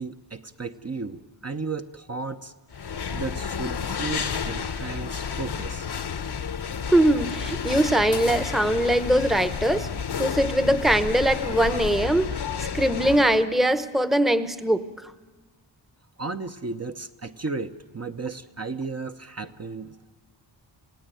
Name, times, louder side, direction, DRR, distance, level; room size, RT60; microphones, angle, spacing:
voice 1, 0.0-2.5 3.1-5.9 16.2-20.1, right 4 dB, 35° right, 6 dB, 0.8 m, -34 dB
sound 1, 2.7-13.4, left 6 dB, 60° left, 1.0 m, -31 dB
voice 2, 6.9-9.9 10.2-12.3 12.6-15.1, right 1 dB, ahead, 11 dB, 0.9 m, -22 dB
28.5 x 17.5 x 9.2 m, 1.3 s
wide cardioid pair, 105°, 44 cm